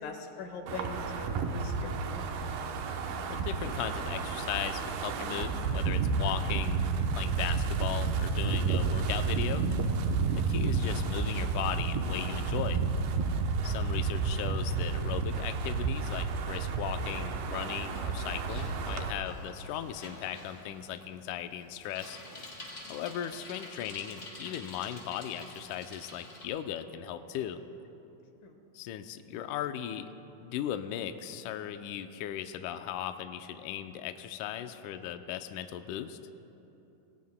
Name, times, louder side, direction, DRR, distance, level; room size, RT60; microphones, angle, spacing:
voice 1, 0.0-2.3 10.0-10.4 28.4-28.5, left 4 dB, 70° left, 3 dB, 2.9 m, -42 dB
Wind, 0.7-19.1, right 4 dB, 85° right, 2.8 m, -31 dB
voice 2, 3.3-6.8 7.1-9.7 10.3-12.8 13.6-22.2 22.9-27.6 28.7-30.1 30.4-36.2, left 11 dB, 85° left, 8 dB, 1.8 m, -37 dB
Bicycle, 17.0-26.4, left 1 dB, 25° left, 3.0 m, -48 dB
26.5 x 20.5 x 2.2 m, 3.0 s
omnidirectional pair, 4.3 m